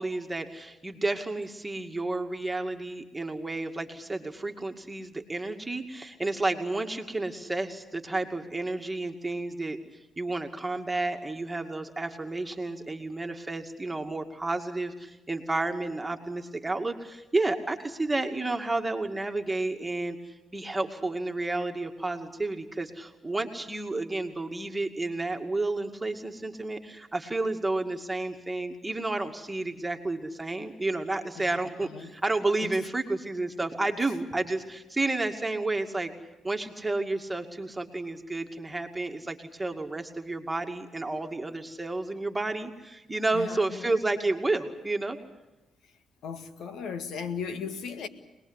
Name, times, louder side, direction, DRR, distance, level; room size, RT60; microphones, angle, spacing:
voice 1, 0.0-9.8 10.2-36.1 36.4-45.2, right 2 dB, 15° right, 2.3 m, -31 dB
voice 2, 31.4-32.1 32.6-32.7 43.3-44.0 46.2-48.1, left 6 dB, 75° left, 2.0 m, -37 dB
25.5 x 20.0 x 8.2 m
cardioid pair, 85°, 0 cm